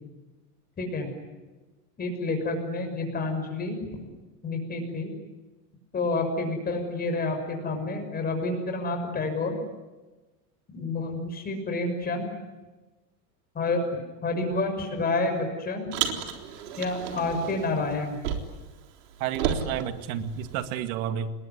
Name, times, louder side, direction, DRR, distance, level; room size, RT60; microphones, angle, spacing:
voice 1, 0.8-1.1 2.0-4.0 4.4-5.1 5.9-9.6 10.7-12.3 13.5-13.8 14.2-15.9 16.8-18.1, left 3 dB, 20° left, 4 dB, 6.5 m, -29 dB
Car, 15.9-18.7 19.0-20.8, right 8 dB, 80° right, 3.9 m, -33 dB
voice 2, 19.2-21.3, right 9 dB, 60° right, 8 dB, 2.3 m, -31 dB
28.0 x 21.5 x 9.7 m, 1.2 s
supercardioid pair, 155°, 47 cm